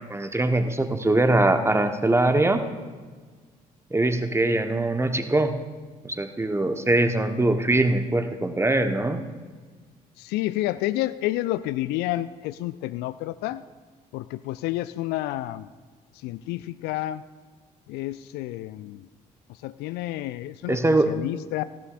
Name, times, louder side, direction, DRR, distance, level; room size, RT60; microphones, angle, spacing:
voice 1, 0.0-2.6 3.9-5.6 6.0-9.2 20.7-21.1, right 2 dB, 15° right, 8 dB, 1.1 m, -22 dB
voice 2, 10.2-13.6 14.1-15.7 16.1-17.2 17.9-19.1 19.5-20.8 21.1-21.6, left 16 dB, 60° left, 15 dB, 0.4 m, -30 dB
18.0 x 15.5 x 2.5 m, 1.5 s
figure-of-eight pair, 45°, 20 cm